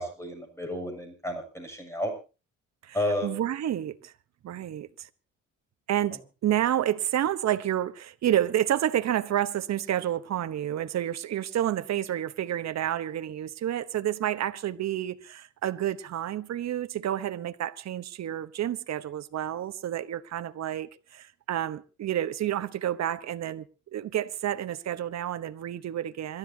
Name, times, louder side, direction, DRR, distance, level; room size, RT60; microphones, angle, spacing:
voice 1, 0.0-2.1 2.9-3.4, left 1 dB, 10° left, 7.0 m, -32 dB
voice 2, 3.2-4.1 4.4-5.1 5.9-23.7 23.9-26.4, right 11 dB, 60° right, 1.1 m, -29 dB
26.5 x 13.0 x 2.8 m
cardioid pair, 90°, 30 cm